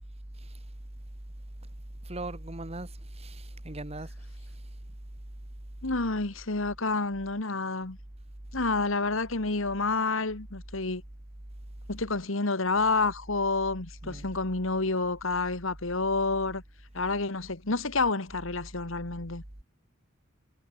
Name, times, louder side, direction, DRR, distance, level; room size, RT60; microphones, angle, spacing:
voice 1, 2.0-4.1 14.0-14.3, right 2 dB, 30° right, 1.5 m, -39 dB
voice 2, 5.8-8.0 8.5-11.0 11.9-16.6 16.9-19.4, left 3 dB, 70° left, 1.8 m, -29 dB
head